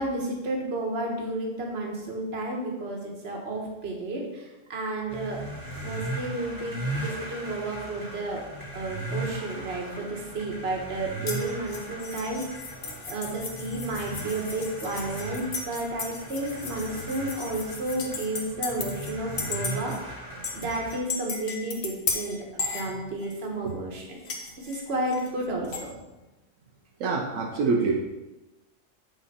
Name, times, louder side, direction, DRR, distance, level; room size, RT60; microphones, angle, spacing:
voice 1, 0.0-5.4 5.8-8.4 8.7-12.7 13.0-22.4 22.7-24.2 24.6-26.0, right 2 dB, 55° right, 0 dB, 1.5 m, -32 dB
sound 1, 5.1-21.0, right 2 dB, 15° right, 1.6 m, -37 dB
sound 2, 11.3-19.1 19.4-20.0 20.4-23.4 24.2-25.9, left 4 dB, 55° left, 1.1 m, -36 dB
voice 2, 27.0-27.9, right 4 dB, 80° right, 0 dB, 1.2 m, -26 dB
7.7 x 4.4 x 4.2 m, 1.1 s
omnidirectional pair, 1.4 m